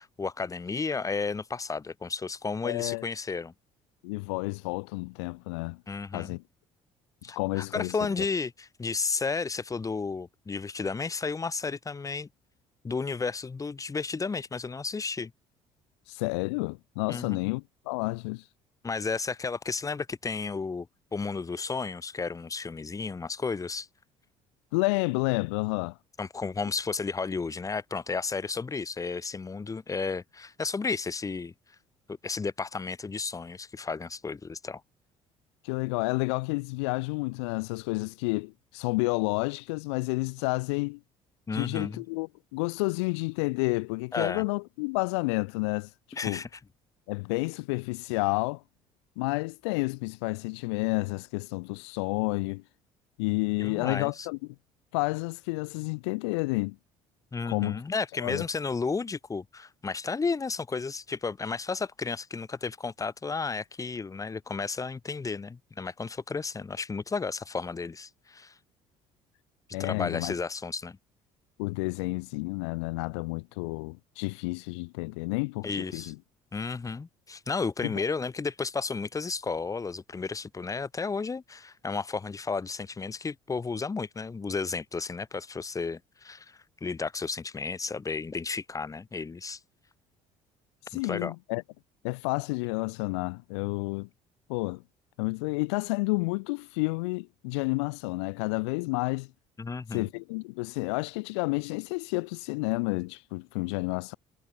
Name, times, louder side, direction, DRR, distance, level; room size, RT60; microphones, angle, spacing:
voice 1, 0.0-3.5 5.9-6.4 7.2-12.3 12.8-15.3 17.1-17.4 18.8-20.9 21.1-23.9 26.2-31.5 32.1-34.8 41.5-42.0 44.1-44.4 46.1-46.5 53.6-54.3 57.3-68.5 69.8-71.0 75.6-76.1 76.5-89.6 91.0-91.3 99.6-100.1, left 4 dB, 25° left, 1.0 m, -33 dB
voice 2, 2.6-3.0 4.0-5.8 6.1-6.4 7.4-7.9 16.1-18.4 24.7-26.0 35.6-41.0 41.5-45.9 46.2-46.4 47.1-48.6 49.2-52.6 53.2-54.4 54.9-56.8 57.4-57.8 58.2-58.4 69.7-70.3 71.6-76.2 77.8-77.9 90.9-91.6 92.0-94.1 94.5-94.8 95.2-99.3 99.9-104.1, left 28 dB, 90° left, 0.5 m, -30 dB
supercardioid pair, 70°, 14 cm